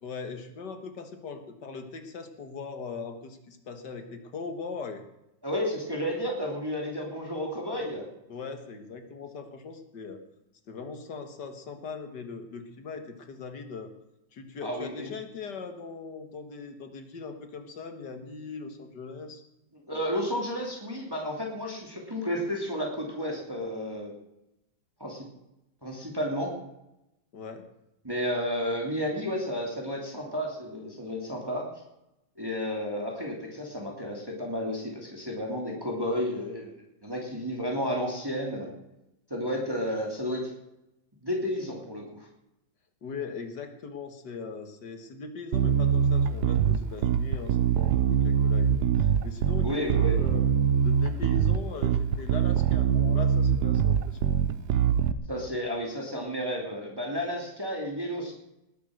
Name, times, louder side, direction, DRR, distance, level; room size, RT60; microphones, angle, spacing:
voice 1, 0.0-5.0 8.3-10.2 10.7-13.9 14.3-19.4 27.3-27.6 43.0-50.4 50.8-54.4, left 4 dB, 65° left, 7 dB, 2.1 m, -40 dB
voice 2, 5.4-8.1 14.6-15.1 19.9-24.1 25.0-25.3 25.8-26.5 28.0-31.6 32.4-36.7 37.0-38.7 39.3-40.5 41.2-42.3 49.6-50.2 55.3-58.3, equal, 10° right, -1 dB, 2.7 m, -32 dB
Bass guitar, 45.5-55.1, right 8 dB, 65° right, 1.3 m, -23 dB
19.5 x 8.5 x 6.4 m, 0.88 s
omnidirectional pair, 2.0 m